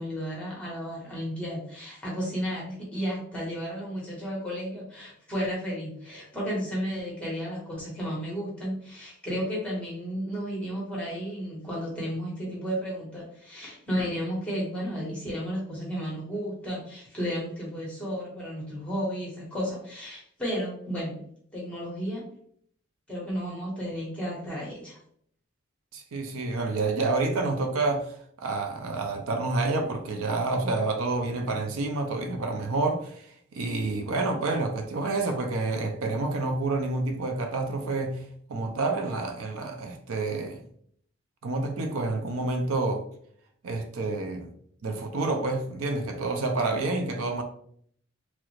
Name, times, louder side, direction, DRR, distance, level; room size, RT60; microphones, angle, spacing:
voice 1, 0.0-21.2 21.5-22.2 23.1-25.0, equal, 5° left, 1.0 m, -33 dB
voice 2, 25.9-33.3 33.5-40.6 41.4-43.0 43.6-44.5 44.8-47.4, right 3 dB, 85° right, 0.5 m, -28 dB
3.0 x 2.4 x 3.1 m
head